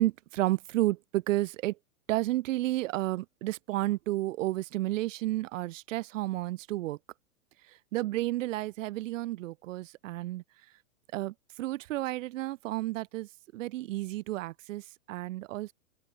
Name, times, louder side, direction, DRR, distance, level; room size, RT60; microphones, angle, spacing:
voice 1, 0.0-1.8 2.1-7.0 7.9-10.4 11.1-15.7, right 16 dB, 65° right, 0.6 m, -31 dB
open air
hypercardioid pair, 130°, 41 cm